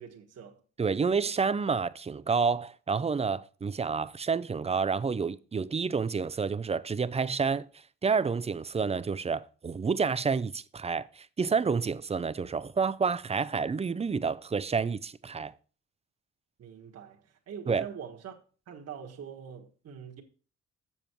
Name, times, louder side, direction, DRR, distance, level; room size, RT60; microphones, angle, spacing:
voice 1, 0.0-0.6 16.6-18.4 18.7-20.2, right 7 dB, 55° right, 1.5 m, -44 dB
voice 2, 0.8-7.7 8.0-15.5 17.7-17.9, right 5 dB, 20° right, 0.5 m, -29 dB
7.3 x 7.2 x 4.5 m
cardioid pair, 90°, 30 cm